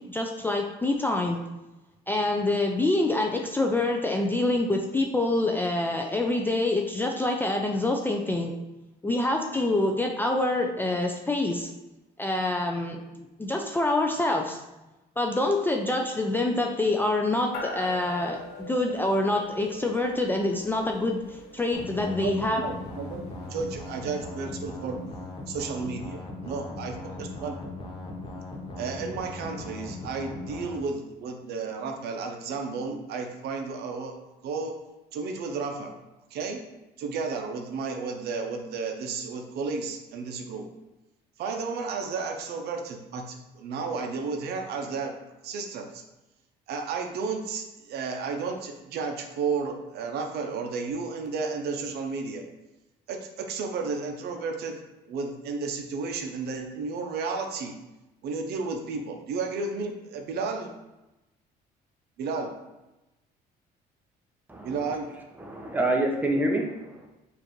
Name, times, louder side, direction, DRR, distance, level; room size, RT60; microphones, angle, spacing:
voice 1, 0.1-1.4 2.1-8.5 9.0-11.7 12.2-14.6 15.2-22.6, left 2 dB, 10° left, 2 dB, 0.3 m, -26 dB
sound 1, 17.5-25.2, left 1 dB, 85° left, 0.7 m, -44 dB
sound 2, 21.7-30.8, left 2 dB, 30° left, 0.7 m, -39 dB
voice 2, 22.0-25.0 25.5-27.6 28.8-34.2 34.4-34.7 35.1-35.9 36.3-36.6 37.0-40.7 41.4-45.1 45.4-46.0 46.7-52.4 53.1-54.8 55.1-57.8 58.2-60.7 62.2-62.5 64.6-65.1, right 4 dB, 70° right, 3 dB, 0.6 m, -32 dB
voice 3, 64.5-64.9 65.4-67.1, right 1 dB, 10° right, 1 dB, 0.7 m, -27 dB
4.9 x 2.5 x 3.0 m, 0.99 s
cardioid pair, 110°, 17 cm